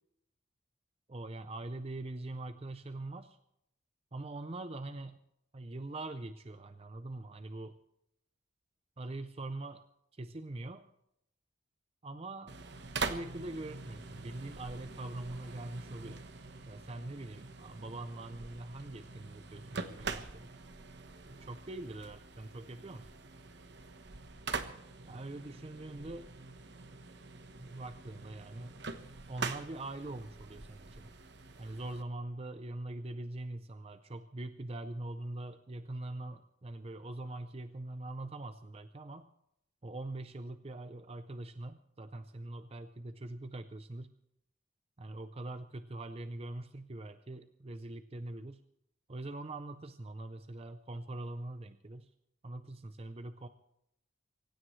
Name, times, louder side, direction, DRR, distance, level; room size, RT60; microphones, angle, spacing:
voice 1, 1.1-3.4 4.1-5.2 5.5-7.8 9.0-9.9 10.1-10.9 12.0-12.5 13.0-16.2 16.7-20.5 21.3-23.1 25.0-26.3 27.6-28.8 29.3-31.1 31.6-39.3 39.8-44.1 45.0-48.6 49.1-52.1 52.4-53.5, right 2 dB, 30° right, 10 dB, 0.6 m, -43 dB
sound 1, 12.5-32.0, right 4 dB, 55° right, 1.2 m, -44 dB
25.5 x 16.0 x 3.2 m, 0.79 s
head